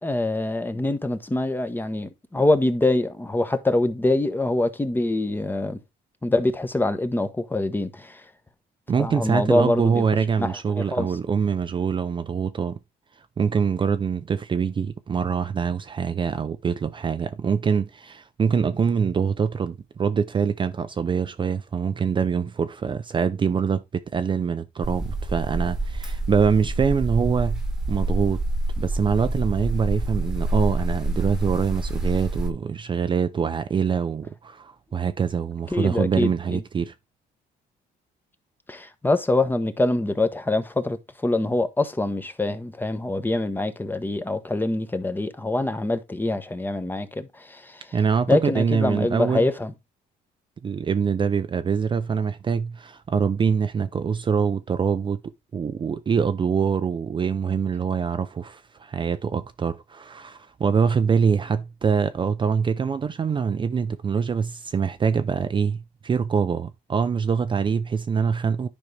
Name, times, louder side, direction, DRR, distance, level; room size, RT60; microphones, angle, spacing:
voice 1, 0.0-5.8 6.2-8.2 9.0-10.0 10.4-11.1 35.7-36.6 38.7-47.9 48.3-49.7, left 2 dB, 10° left, 1.1 m, -24 dB
voice 2, 8.9-12.8 13.2-27.6 27.9-28.4 28.8-36.9 47.9-49.5 50.6-55.2 55.5-68.7, right 6 dB, 30° right, 0.6 m, -24 dB
sound 1, 24.8-32.5, right 2 dB, 5° right, 1.5 m, -27 dB
10.5 x 5.3 x 3.3 m
cardioid pair, 110°, 17 cm